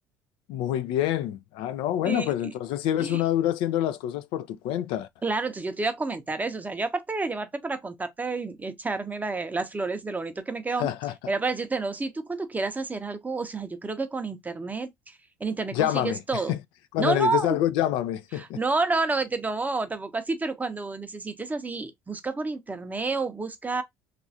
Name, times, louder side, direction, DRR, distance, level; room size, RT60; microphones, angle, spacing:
voice 1, 0.5-5.1 10.8-11.1 15.7-16.2 16.5-16.6 16.9-18.6, left 12 dB, 55° left, 0.3 m, -26 dB
voice 2, 2.0-2.5 3.0-3.2 5.2-10.9 11.3-16.6 17.0-17.6 18.4-23.8, right 3 dB, 15° right, 0.6 m, -30 dB
3.1 x 2.5 x 2.4 m
figure-of-eight pair, 60°, 10 cm